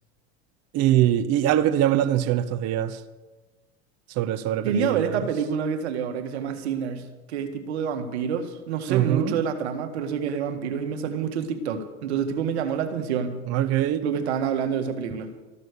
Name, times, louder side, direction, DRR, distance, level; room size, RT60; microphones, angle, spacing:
voice 1, 0.7-3.0 4.1-5.3 8.9-9.4 13.5-14.1, right 12 dB, 50° right, 0.9 m, -23 dB
voice 2, 4.6-13.4 14.0-15.3, right 7 dB, 85° right, 1.8 m, -27 dB
14.5 x 12.0 x 6.7 m
supercardioid pair, 105°, 32 cm